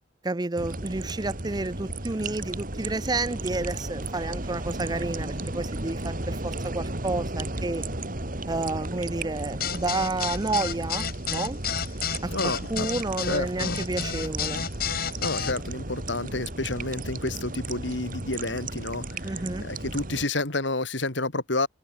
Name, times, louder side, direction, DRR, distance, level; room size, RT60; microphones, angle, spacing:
voice 1, 0.2-7.8 8.5-11.6 12.2-14.6 19.2-19.7, right 2 dB, 20° right, 0.6 m, -30 dB
sound 1, 0.6-20.3, right 2 dB, 50° right, 3.6 m, -34 dB
sound 2, 9.6-15.5, left 8 dB, 55° left, 2.0 m, -31 dB
voice 2, 12.3-12.9 13.3-13.8 15.2-21.7, left 2 dB, 75° left, 3.3 m, -30 dB
head